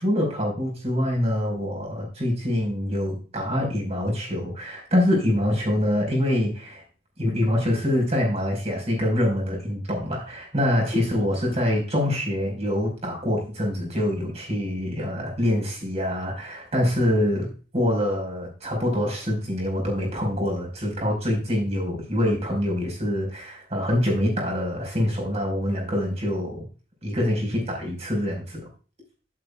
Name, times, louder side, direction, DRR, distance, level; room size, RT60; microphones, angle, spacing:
voice 1, 0.0-6.8 7.2-17.5 17.7-26.6 27.0-28.6, left 1 dB, 35° right, 0 dB, 5.1 m, -25 dB
12.5 x 11.0 x 2.4 m, 0.36 s
head